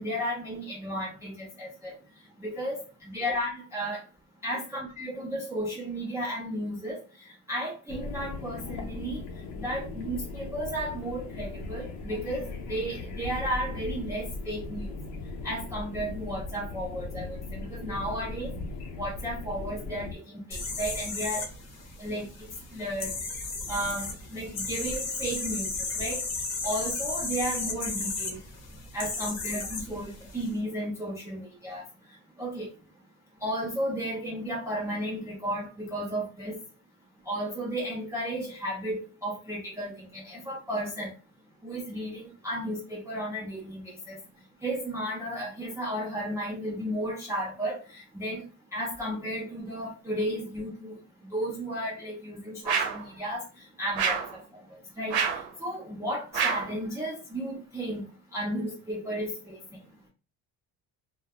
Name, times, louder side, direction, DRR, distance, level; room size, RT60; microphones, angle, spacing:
voice 1, 0.0-1.9 2.4-2.8 3.1-4.0 4.4-7.0 7.5-9.2 9.6-14.9 15.4-18.6 19.0-21.5 22.0-23.2 23.7-25.7 26.0-26.2 26.6-28.4 28.9-31.8 32.4-32.7 33.4-36.6 37.3-41.1 41.6-44.2 44.6-48.4 48.7-51.0 51.3-53.4 53.8-54.4 54.7-55.2 55.6-58.0 58.3-59.6, equal, 10° right, -5 dB, 0.3 m, -33 dB
sound 1, 7.9-20.1, left 3 dB, 80° left, 0.7 m, -38 dB
sound 2, 20.5-30.5, left 3 dB, 40° left, 0.7 m, -34 dB
sound 3, 52.7-53.1 54.0-54.4 55.1-55.5 56.3-56.7, right 6 dB, 70° right, 0.7 m, -27 dB
2.2 x 2.0 x 2.8 m, 0.32 s
cardioid pair, 165°, 40 cm